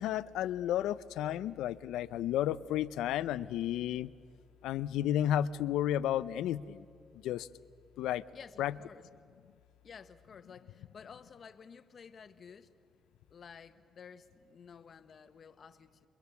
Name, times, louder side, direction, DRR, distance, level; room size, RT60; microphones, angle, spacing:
voice 1, 0.0-4.1 4.6-6.8 7.2-7.5 8.0-8.2 8.6-8.7, left 11 dB, 90° left, 15 dB, 0.6 m, -32 dB
voice 2, 8.3-9.0 9.8-12.7 13.3-16.1, left 6 dB, 50° left, 10 dB, 1.2 m, -53 dB
28.5 x 23.0 x 7.1 m, 2.2 s
cardioid pair, 90°, 0 cm